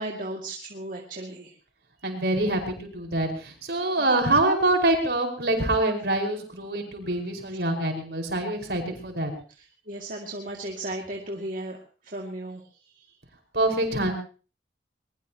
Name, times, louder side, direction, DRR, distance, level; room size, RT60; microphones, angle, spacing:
voice 1, 0.0-1.5 4.0-4.1 9.9-11.8 12.0-12.7, right 1 dB, 50° right, -1 dB, 2.3 m, -35 dB
voice 2, 2.0-9.3 13.5-14.2, right 2 dB, 65° right, 3 dB, 5.2 m, -25 dB
22.5 x 21.5 x 3.0 m, 0.37 s
head